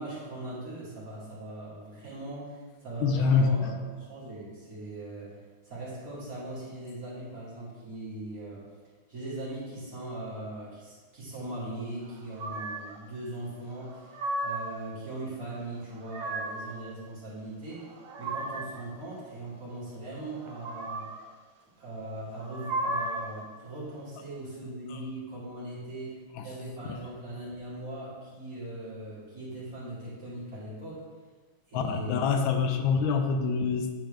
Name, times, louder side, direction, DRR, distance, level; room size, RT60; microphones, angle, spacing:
voice 1, 0.0-3.8 4.1-5.4 5.6-8.6 9.1-14.1 14.4-21.0 21.8-31.0 31.7-32.2, right 1 dB, 40° right, -9 dB, 2.6 m, -40 dB
voice 2, 3.0-3.5 24.9-25.0 26.3-26.5 31.7-33.9, left 5 dB, 80° left, 5 dB, 1.4 m, -25 dB
sound 1, 12.4-13.0 13.8-14.8 15.8-16.8 17.7-18.8 20.4-21.2 22.4-23.4, right 2 dB, 85° right, 1.6 m, -35 dB
9.0 x 4.4 x 3.4 m, 1.4 s
omnidirectional pair, 2.3 m